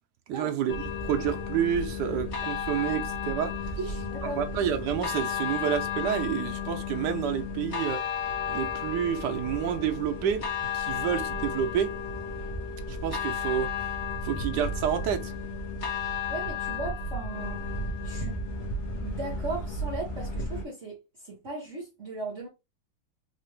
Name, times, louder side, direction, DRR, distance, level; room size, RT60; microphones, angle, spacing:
voice 1, 0.3-0.7 1.0-3.8 4.4-8.0 8.5-11.9 12.9-13.9 14.2-15.3, right 9 dB, 80° right, 0.9 m, -29 dB
sound 1, 0.7-20.6, left 4 dB, 45° left, 0.9 m, -33 dB
voice 2, 3.8-4.4 16.3-17.6 18.0-18.4 19.0-22.5, right 3 dB, 40° right, 1.2 m, -37 dB
3.8 x 2.4 x 3.2 m
omnidirectional pair, 2.4 m